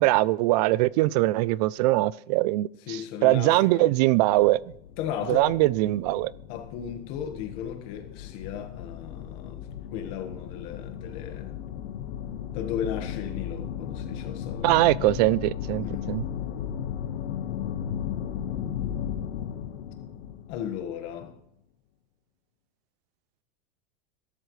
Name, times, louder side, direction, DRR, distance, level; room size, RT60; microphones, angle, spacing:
voice 1, 0.0-4.6 5.3-6.3 14.6-16.2, right 18 dB, 45° right, 0.4 m, -22 dB
voice 2, 2.8-3.8 5.0-5.7 6.5-9.7 9.9-11.5 12.5-14.8 15.9-16.1 20.5-21.3, left 9 dB, 45° left, 1.5 m, -35 dB
sound 1, 4.3-21.3, left 9 dB, 75° left, 1.4 m, -36 dB
21.5 x 12.5 x 3.2 m
supercardioid pair, 165°, 31 cm